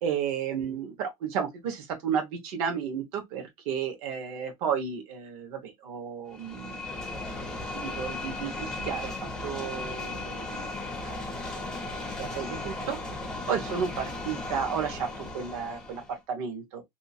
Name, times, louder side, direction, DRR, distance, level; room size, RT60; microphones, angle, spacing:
voice 1, 0.0-6.8 7.7-9.1 9.4-10.7 11.0-11.5 12.2-13.0 13.5-16.8, right 7 dB, 65° right, 1.0 m, -33 dB
sound 1, 6.3-16.2, left 2 dB, 5° left, 0.5 m, -36 dB
2.8 x 2.3 x 2.6 m
supercardioid pair, 165°, 20 cm